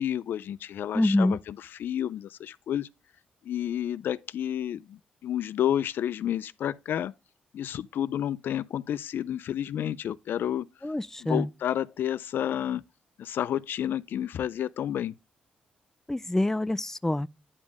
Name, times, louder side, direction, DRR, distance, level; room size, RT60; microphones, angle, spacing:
voice 1, 0.0-2.9 3.4-7.1 7.5-10.7 11.2-12.8 13.2-15.1, left 10 dB, 70° left, 0.4 m, -30 dB
voice 2, 0.9-1.4 10.8-11.5 16.1-17.3, left 1 dB, 10° left, 0.4 m, -26 dB
9.7 x 5.1 x 3.5 m
supercardioid pair, 55°, 4 cm